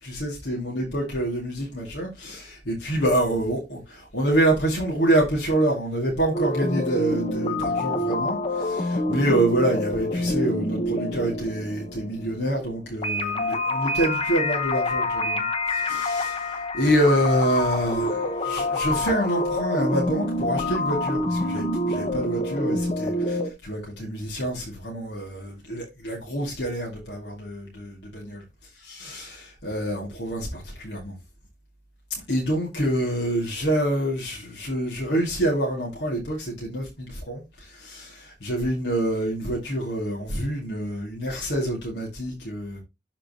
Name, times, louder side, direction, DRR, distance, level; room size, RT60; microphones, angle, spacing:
voice 1, 0.0-28.4 28.8-31.1 32.3-42.8, right 1 dB, 70° left, 2.2 m, -26 dB
sound 1, 6.3-23.5, left 1 dB, 35° left, 0.9 m, -27 dB
12.0 x 4.4 x 2.9 m
head